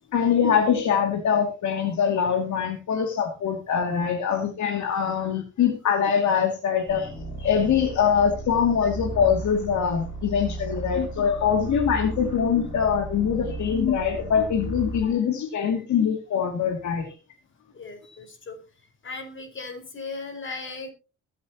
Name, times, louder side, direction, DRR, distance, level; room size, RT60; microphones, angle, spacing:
voice 1, 0.1-7.1 7.4-17.1, left 7 dB, 70° left, 3 dB, 2.4 m, -23 dB
sound 1, 6.9-15.1, right 2 dB, 25° left, 6.3 m, -35 dB
voice 2, 17.7-18.6 19.0-20.9, left 3 dB, 40° left, 5 dB, 4.8 m, -37 dB
22.5 x 8.5 x 2.8 m, 0.32 s
cardioid pair, 90°, 30 cm